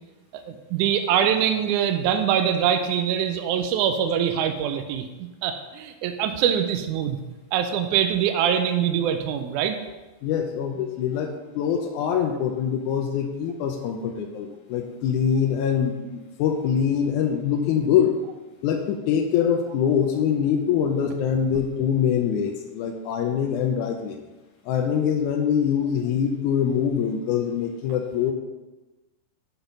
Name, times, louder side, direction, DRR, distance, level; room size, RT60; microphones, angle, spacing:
voice 1, 0.3-7.2 7.5-9.8, right 9 dB, 80° right, 7 dB, 1.8 m, -24 dB
voice 2, 10.2-18.1 18.6-24.2 24.7-28.3, left 8 dB, 80° left, 3 dB, 1.8 m, -24 dB
7.0 x 5.8 x 5.3 m, 1.1 s
omnidirectional pair, 4.0 m